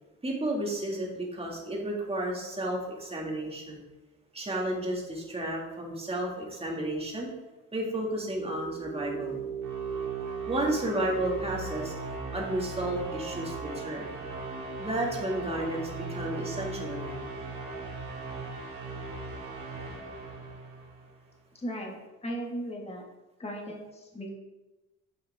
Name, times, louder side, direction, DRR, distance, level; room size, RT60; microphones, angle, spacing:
voice 1, 0.2-3.8 4.3-7.3 7.7-9.5 10.5-11.9 12.3-14.1 14.8-17.3, right 1 dB, 20° right, -2 dB, 2.2 m, -32 dB
sound 1, 8.1-21.2, right 4 dB, 85° right, 2.1 m, -38 dB
voice 2, 21.5-23.0 23.4-24.3, equal, 20° left, -1 dB, 1.8 m, -37 dB
8.9 x 5.6 x 3.6 m, 1.1 s
cardioid pair, 90°, 30 cm